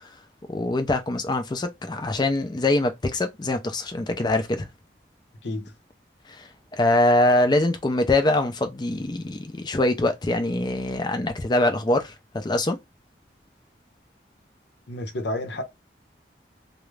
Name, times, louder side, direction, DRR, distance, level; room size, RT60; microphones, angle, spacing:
voice 1, 0.5-4.7 6.3-12.8, left 2 dB, 25° left, 0.4 m, -23 dB
voice 2, 5.4-5.7 14.9-15.6, left 1 dB, 85° left, 0.7 m, -30 dB
2.4 x 2.0 x 3.1 m
head